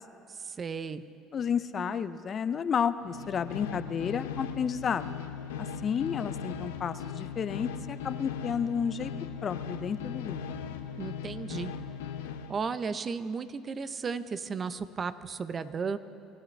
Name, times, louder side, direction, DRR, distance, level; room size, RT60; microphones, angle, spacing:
voice 1, 0.3-1.0 11.0-11.7 12.5-16.0, right 5 dB, 35° right, 13 dB, 0.7 m, -34 dB
voice 2, 1.3-5.1 5.6-9.1 9.4-10.4, left 7 dB, 45° left, 13 dB, 0.5 m, -31 dB
sound 1, 3.0-12.6, left 7 dB, 90° left, 0.7 m, -38 dB
25.0 x 14.0 x 3.3 m, 2.5 s
supercardioid pair, 75°, 0 cm